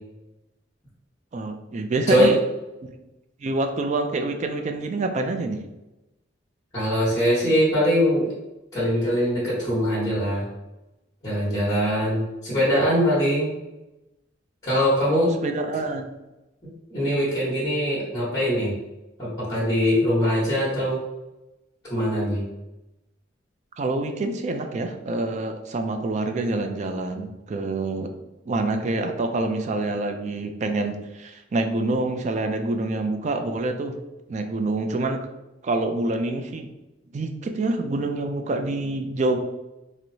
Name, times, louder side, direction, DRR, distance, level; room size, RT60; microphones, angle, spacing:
voice 1, 1.3-2.4 2.8-2.9 3.4-5.6 15.1-16.1 23.8-28.1 28.5-33.9 34.3-35.2 35.6-36.7 37.1-39.4, right 2 dB, 40° right, 6 dB, 0.3 m, -26 dB
voice 2, 6.7-8.3 8.7-10.4 11.2-13.5 14.6-15.3 16.9-18.7 19.2-21.0 21.9-22.4, equal, 20° left, -8 dB, 1.2 m, -22 dB
4.4 x 2.0 x 2.6 m, 0.98 s
head